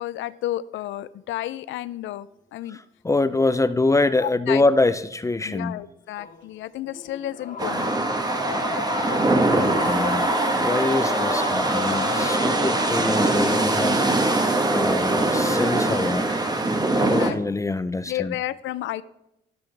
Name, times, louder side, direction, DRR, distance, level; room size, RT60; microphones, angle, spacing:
voice 1, 0.0-2.8 4.2-4.6 5.4-7.9 17.0-17.4 18.1-19.0, left 13 dB, 75° left, 15 dB, 0.5 m, -31 dB
voice 2, 2.7-5.8 9.3-14.0 14.7-16.4 16.9-18.4, left 2 dB, 15° left, 14 dB, 0.5 m, -25 dB
sound 1, 6.2-6.4 6.8-13.9, left 6 dB, 45° left, 1.3 m, -34 dB
sound 2, 7.6-17.3, right 2 dB, 20° right, 1.2 m, -22 dB
17.5 x 6.1 x 3.3 m, 0.86 s
cardioid pair, 90°, 20 cm